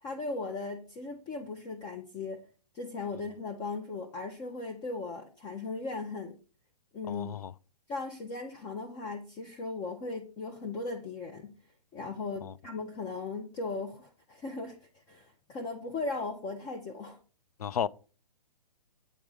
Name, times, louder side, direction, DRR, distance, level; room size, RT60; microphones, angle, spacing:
voice 1, 0.0-2.4 2.7-6.4 6.9-7.3 7.9-11.6 11.9-17.2, left 3 dB, 20° left, 0.7 m, -37 dB
voice 2, 7.1-7.5 12.4-12.5 17.6-17.9, left 8 dB, 65° left, 0.4 m, -33 dB
8.2 x 3.6 x 4.9 m
figure-of-eight pair, 130°, 21 cm